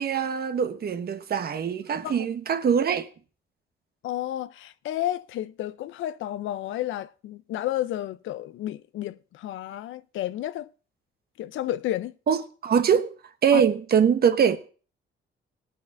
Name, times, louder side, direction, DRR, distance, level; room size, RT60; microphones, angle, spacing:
voice 1, 0.0-3.1 12.3-13.2 13.4-14.6, right 7 dB, 50° right, 1.1 m, -23 dB
voice 2, 4.0-10.7 11.4-12.1 13.5-13.6, left 13 dB, 80° left, 0.6 m, -31 dB
19.5 x 9.1 x 2.6 m
cardioid pair, 90°, 20 cm